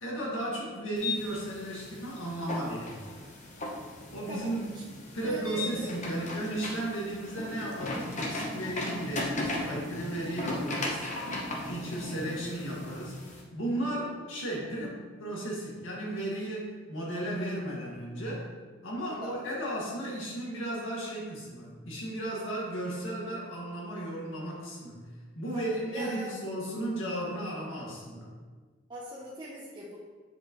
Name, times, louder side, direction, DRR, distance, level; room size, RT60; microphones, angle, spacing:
voice 1, 0.0-3.0 4.1-11.4 11.6-18.5 18.8-25.1 25.4-28.3, right 1 dB, 80° left, -4 dB, 1.9 m, -35 dB
sound 1, 1.0-13.4, left 2 dB, 35° left, 0.9 m, -37 dB
voice 2, 5.2-5.9 12.2-12.5 19.1-19.3 25.5-26.3 28.9-30.0, right 1 dB, 25° right, -7 dB, 0.8 m, -41 dB
7.6 x 4.8 x 3.0 m, 1.4 s
head